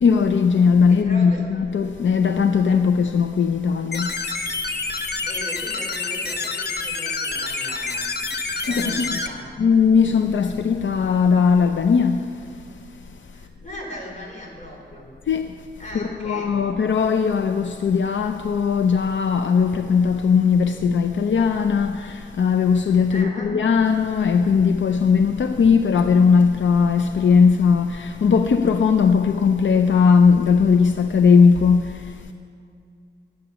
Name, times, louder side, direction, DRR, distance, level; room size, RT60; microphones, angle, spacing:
voice 1, 0.0-4.1 8.7-9.1 9.6-12.4 15.3-15.6 15.9-32.3, left 5 dB, 85° left, 0.5 m, -18 dB
voice 2, 0.9-1.4 5.3-8.0 8.7-9.5 13.3-15.1 15.8-16.7 23.1-23.6, left 1 dB, 40° left, 3.6 m, -38 dB
sound 1, 3.9-9.3, left 4 dB, 60° left, 0.9 m, -27 dB
13.0 x 9.6 x 6.9 m
wide cardioid pair, 125°, 19 cm